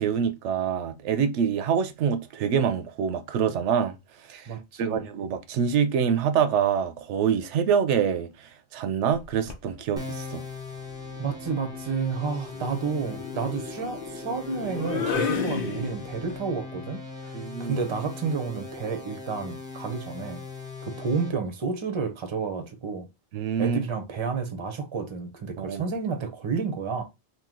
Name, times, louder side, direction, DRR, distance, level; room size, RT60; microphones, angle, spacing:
voice 1, 0.0-3.9 4.3-4.5 4.8-8.3 8.7-10.4 17.3-17.8 23.3-23.8 25.6-25.8, right 7 dB, 85° right, 0.9 m, -25 dB
voice 2, 4.5-5.0 11.2-20.4 20.8-23.1 23.6-27.0, right 5 dB, 30° right, 0.6 m, -31 dB
sound 1, 9.1-9.7 11.1-16.3, left 6 dB, 55° left, 0.8 m, -34 dB
sound 2, 10.0-21.3, left 4 dB, 5° right, 0.9 m, -39 dB
2.9 x 2.6 x 3.7 m
omnidirectional pair, 1.2 m